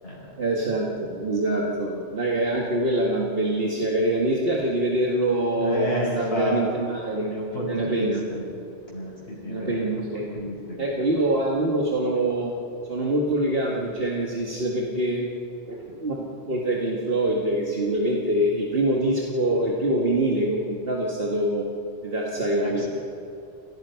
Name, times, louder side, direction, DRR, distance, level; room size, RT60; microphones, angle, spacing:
voice 1, 0.4-5.9 6.2-7.3 7.7-8.2 9.5-10.2 10.8-12.5 12.9-15.3 15.7-21.7 22.0-22.8, right 1 dB, 60° right, -2 dB, 2.1 m, -25 dB
voice 2, 5.6-6.6 7.3-8.4 8.9-10.9 11.1-11.2 22.6-22.9, equal, 70° left, -5 dB, 8.2 m, -31 dB
30.0 x 17.5 x 5.8 m, 2.6 s
omnidirectional pair, 1.1 m